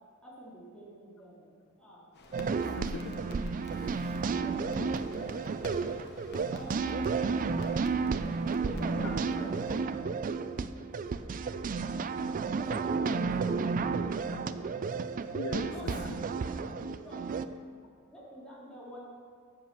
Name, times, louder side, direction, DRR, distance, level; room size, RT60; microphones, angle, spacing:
voice 1, 0.2-2.0 4.2-6.1 6.5-8.3 8.6-9.5 12.5-15.0 15.6-17.6 18.1-19.0, equal, 5° left, -8 dB, 3.0 m, -47 dB
sound 1, 2.1-9.8, left 2 dB, 50° left, 1.0 m, -50 dB
sound 2, 2.3-17.5, right 4 dB, 35° right, 0.3 m, -32 dB
voice 2, 2.5-3.2 3.7-4.2 4.8-4.9 15.3-16.1, left 3 dB, 65° left, 4 dB, 0.7 m, -41 dB
7.5 x 7.4 x 6.8 m, 2.1 s
head